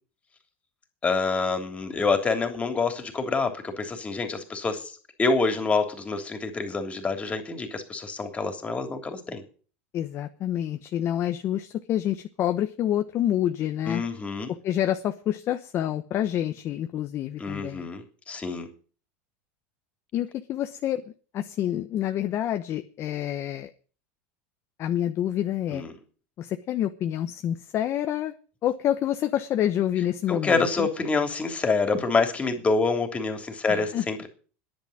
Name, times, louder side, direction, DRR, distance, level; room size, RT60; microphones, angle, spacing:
voice 1, 1.0-4.9 5.2-9.4 13.8-14.5 17.4-18.7 25.7-25.9 30.3-34.3, left 4 dB, 20° left, 6 dB, 3.2 m, -27 dB
voice 2, 9.9-14.0 14.6-17.9 20.1-21.0 21.3-23.7 24.8-25.8 26.4-28.3 28.6-30.9 33.7-34.0, left 11 dB, 40° left, 7 dB, 1.0 m, -27 dB
10.5 x 9.6 x 9.6 m, 0.40 s
supercardioid pair, 130°, 7 cm